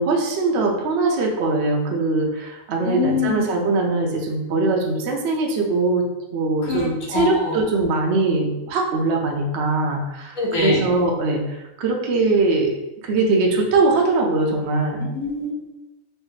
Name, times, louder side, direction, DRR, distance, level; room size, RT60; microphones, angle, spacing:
voice 1, 0.0-6.1 6.3-12.7 13.0-15.0, right 3 dB, 65° right, 1 dB, 0.7 m, -21 dB
voice 2, 2.8-3.4 6.7-7.6 10.4-10.9 15.0-15.5, left 4 dB, 75° left, -3 dB, 1.2 m, -24 dB
3.2 x 2.3 x 3.1 m, 0.98 s
omnidirectional pair, 1.5 m